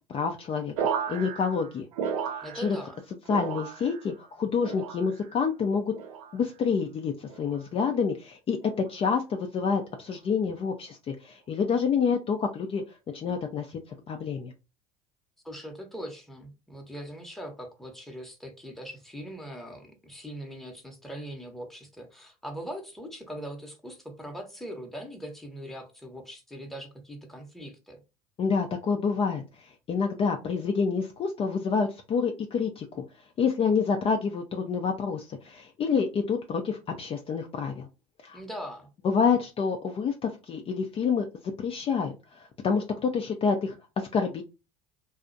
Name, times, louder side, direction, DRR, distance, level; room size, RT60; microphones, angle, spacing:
voice 1, 0.1-1.9 2.5-2.8 3.3-5.9 6.3-13.8 14.1-14.5 28.4-33.0 33.4-37.9 38.2-38.4 39.0-41.3 41.6-44.4, left 5 dB, 30° left, 4 dB, 0.4 m, -28 dB
sound 1, 0.8-3.0 3.3-4.1 4.6-5.3 5.9-6.4 7.3-7.7 8.6-8.9, right 7 dB, 75° right, 0.4 m, -34 dB
voice 2, 2.4-3.0 15.4-28.0 38.3-38.9, equal, ahead, 2 dB, 0.8 m, -41 dB
2.4 x 2.0 x 2.5 m, 0.28 s
hypercardioid pair, 70°, 19 cm